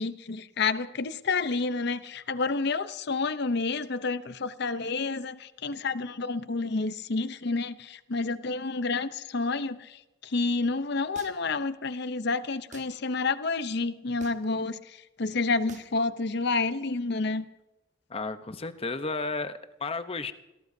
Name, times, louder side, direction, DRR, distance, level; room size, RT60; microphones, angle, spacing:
voice 1, 0.0-17.4, left 3 dB, 60° left, 13 dB, 0.7 m, -29 dB
sound 1, 11.1-11.6 12.7-12.9 14.2-14.6 15.7-16.0, right 4 dB, 40° right, 1.3 m, -48 dB
voice 2, 18.1-20.3, left 3 dB, 30° left, 10 dB, 0.9 m, -33 dB
28.0 x 17.5 x 2.7 m, 0.98 s
head